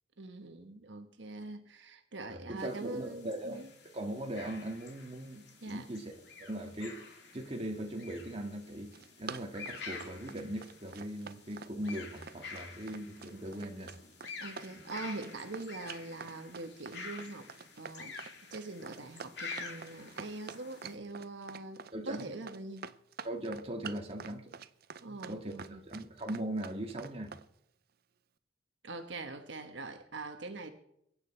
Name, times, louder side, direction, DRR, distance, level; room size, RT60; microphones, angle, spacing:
voice 1, 0.2-3.7 5.6-5.9 12.5-12.8 14.4-17.5 17.8-18.2 18.5-22.9 25.0-25.8 28.8-30.7, right 2 dB, 75° right, 1.2 m, -43 dB
voice 2, 2.3-3.6 3.9-6.1 6.4-7.0 7.3-8.9 9.2-13.9 21.9-22.3 23.2-24.5 25.1-27.3, right 1 dB, 30° right, 1.9 m, -39 dB
sound 1, 2.6-20.9, left 4 dB, 60° left, 2.5 m, -49 dB
Run, 8.7-27.5, right 6 dB, 55° right, 0.6 m, -47 dB
23.0 x 9.1 x 4.4 m
head